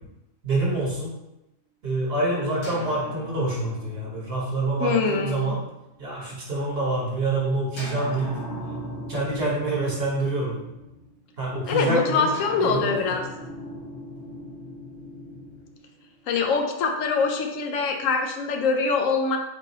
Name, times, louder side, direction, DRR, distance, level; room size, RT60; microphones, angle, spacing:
voice 1, 0.4-1.1 1.8-5.6 6.0-8.3 9.1-10.6 11.4-12.3 12.6-13.2, right 2 dB, 50° right, -5 dB, 1.5 m, -26 dB
sound 1, 2.6-6.4 7.8-11.3 12.3-16.5, equal, 55° left, 1.4 m, -39 dB
voice 2, 4.8-5.5 11.7-13.2 16.3-19.4, left 4 dB, 80° left, 3 dB, 1.0 m, -24 dB
3.8 x 2.6 x 4.0 m, 0.92 s
omnidirectional pair, 1.3 m